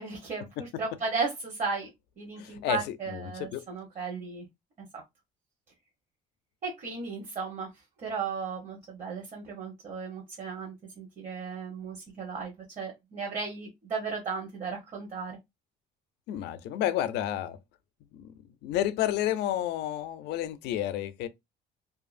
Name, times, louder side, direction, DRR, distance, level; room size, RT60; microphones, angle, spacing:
voice 1, 0.0-1.9 2.2-4.5 4.8-5.0 6.6-7.7 8.0-15.4, right 4 dB, 45° right, 1.1 m, -35 dB
voice 2, 2.4-3.6 16.3-17.6 18.1-18.3 18.6-21.3, left 12 dB, 80° left, 0.4 m, -31 dB
2.7 x 2.5 x 2.4 m
cardioid pair, 110°, 17 cm